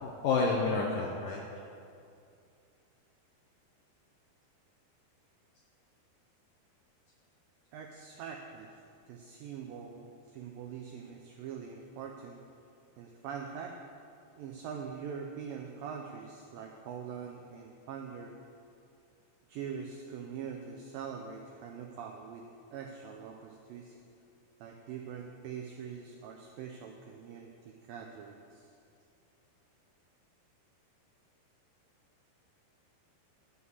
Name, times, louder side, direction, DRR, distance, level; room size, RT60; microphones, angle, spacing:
voice 1, 0.0-1.4, left 4 dB, 75° left, -1 dB, 2.0 m, -29 dB
voice 2, 7.7-8.7 9.1-12.4 13.0-13.8 14.3-18.3 19.5-24.0 24.6-28.7, right 7 dB, 90° right, 2 dB, 2.0 m, -43 dB
11.5 x 5.5 x 8.1 m, 2.4 s
omnidirectional pair, 4.8 m